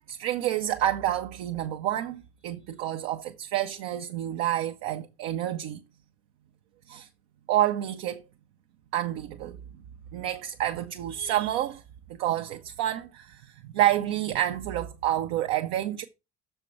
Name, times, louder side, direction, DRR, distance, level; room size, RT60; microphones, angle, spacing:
voice 1, 0.1-5.8 6.9-7.1 7.5-8.2 8.9-9.6 10.1-11.8 12.1-13.4 13.7-16.0, right 12 dB, 55° right, 0.7 m, -28 dB
6.7 x 4.4 x 5.5 m
figure-of-eight pair, 55°, 32 cm